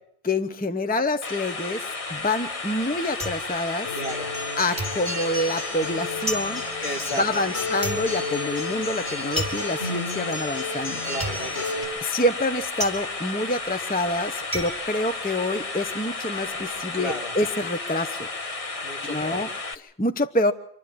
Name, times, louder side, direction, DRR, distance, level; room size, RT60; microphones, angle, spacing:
voice 1, 0.2-3.9 4.6-6.6 7.2-11.0 12.0-18.3 19.1-19.5 19.7-20.5, left 1 dB, 10° left, 9 dB, 0.8 m, -27 dB
sound 1, 1.2-19.7, left 3 dB, 35° left, 1.1 m, -33 dB
sound 2, 2.1-4.5 4.8-15.9 16.2-16.8, equal, 5° right, 4.1 m, -35 dB
Acoustic guitar, 3.9-11.8, left 2 dB, 90° left, 7.3 m, -33 dB
voice 2, 3.9-4.3 6.8-7.6 11.1-11.9 16.9-17.4 18.8-19.5, equal, 60° left, 2 dB, 2.5 m, -34 dB
27.0 x 12.5 x 8.6 m, 0.70 s
omnidirectional pair, 1.1 m